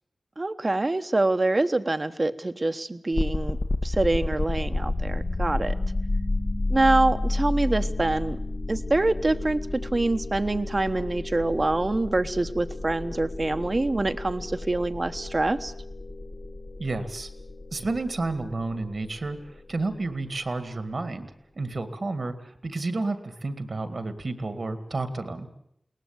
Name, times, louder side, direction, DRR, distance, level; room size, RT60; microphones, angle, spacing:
voice 1, 0.4-3.6 3.8-5.7 6.7-8.4 8.7-15.7, right 2 dB, 40° right, 10 dB, 1.1 m, -25 dB
sound 1, 3.1-20.1, left 2 dB, 55° left, 1.5 m, -31 dB
voice 2, 16.8-17.3 17.7-19.4 19.7-25.5, right 3 dB, 65° right, 10 dB, 2.0 m, -31 dB
22.0 x 18.5 x 8.8 m, 0.74 s
wide cardioid pair, 65°, 0 cm